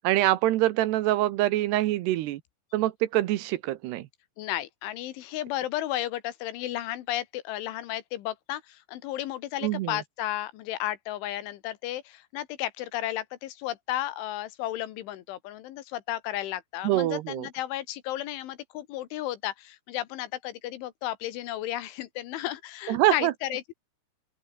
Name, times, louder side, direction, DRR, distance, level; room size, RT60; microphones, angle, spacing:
voice 1, 0.0-2.4 2.7-4.1 9.6-10.0 16.8-17.5 22.9-23.3, right 15 dB, 70° right, 2.8 m, -25 dB
voice 2, 4.4-23.7, left 14 dB, 85° left, 3.9 m, -33 dB
open air
omnidirectional pair, 5.4 m